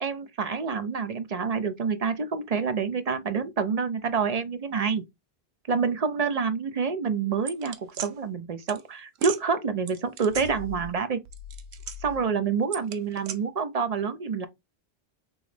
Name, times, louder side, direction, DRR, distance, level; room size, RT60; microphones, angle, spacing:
voice 1, 0.0-5.0 5.7-11.2 12.0-14.5, right 5 dB, 45° right, 0.5 m, -27 dB
sound 1, 7.5-8.1 8.7-8.8 9.2-9.4 9.9-11.0 11.3-12.2 12.7-13.4, right 5 dB, 85° right, 0.9 m, -37 dB
3.8 x 3.0 x 3.3 m
omnidirectional pair, 1.1 m